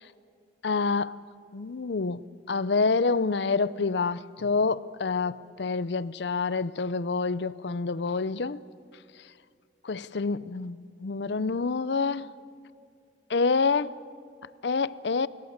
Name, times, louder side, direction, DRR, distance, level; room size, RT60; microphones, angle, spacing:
voice 1, 0.6-1.2 1.5-2.2 2.5-8.6 9.8-12.3 13.3-13.9 14.6-15.3, left 4 dB, 65° left, 0.6 m, -27 dB
29.0 x 17.5 x 8.0 m
head